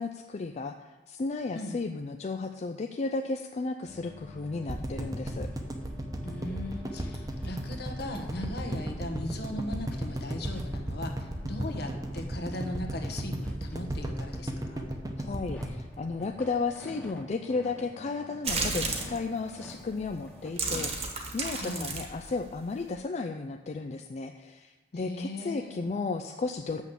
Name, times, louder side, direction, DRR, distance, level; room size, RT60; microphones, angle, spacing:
voice 1, 0.0-5.5 15.3-26.8, left 3 dB, 40° left, 6 dB, 0.4 m, -34 dB
sound 1, 3.8-20.5, left 2 dB, 10° left, 1.1 m, -50 dB
sound 2, 4.7-16.8 17.1-17.2 17.4-17.5, right 1 dB, 20° right, 0.9 m, -34 dB
voice 2, 6.2-14.8 21.5-21.9 24.9-25.8, left 1 dB, 60° left, 3 dB, 1.3 m, -38 dB
sound 3, 18.4-19.2 19.9-20.1 20.4-22.9, right 3 dB, 35° right, 1.4 m, -32 dB
7.2 x 6.2 x 7.0 m, 1.2 s
head